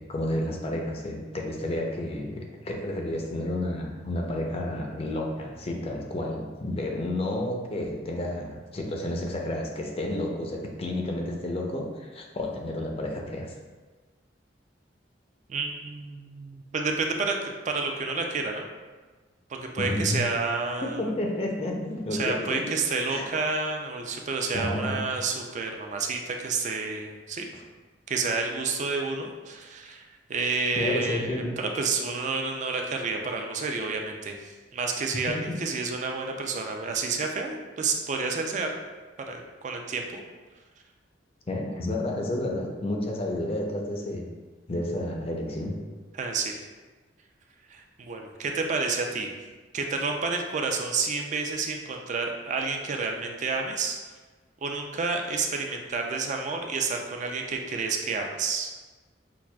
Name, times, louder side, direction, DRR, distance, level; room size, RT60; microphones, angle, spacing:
voice 1, 0.0-13.5 19.8-20.2 21.0-22.6 23.1-23.3 24.5-25.0 30.8-31.5 35.3-35.6 41.5-44.3 44.7-45.8, left 1 dB, 35° left, 1 dB, 0.5 m, -31 dB
voice 2, 15.5-18.7 19.5-21.0 22.1-27.5 28.1-30.0 30.3-38.7 39.2-40.2 46.1-46.6 47.7-49.3 49.7-54.0 54.6-58.7, right 4 dB, 40° right, 3 dB, 0.4 m, -30 dB
5.9 x 2.4 x 2.2 m, 1.3 s
head